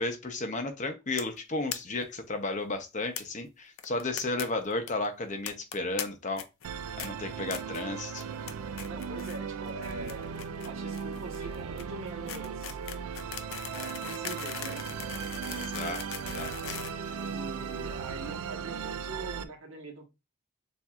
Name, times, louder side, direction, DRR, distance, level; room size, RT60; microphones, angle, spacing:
voice 1, 0.0-6.5 7.0-8.2 15.5-16.8 17.0-17.2, left 2 dB, 35° left, 0.7 m, -34 dB
sound 1, 1.2-1.4 1.7-1.8 2.0-2.1 2.3-2.4 3.2-3.3 3.8-4.4 4.7-4.9 5.5-6.0 6.4-6.7 7.0-7.1 7.5-7.8 8.2-8.5 8.8-9.4 9.7-17.7, left 9 dB, 75° left, 0.6 m, -40 dB
Musical instrument, 6.6-19.4, right 6 dB, 85° right, 0.4 m, -37 dB
voice 2, 8.9-10.3 10.6-12.8 13.7-14.9 17.2-20.1, right 2 dB, 70° right, 1.4 m, -43 dB
7.0 x 2.6 x 2.4 m
head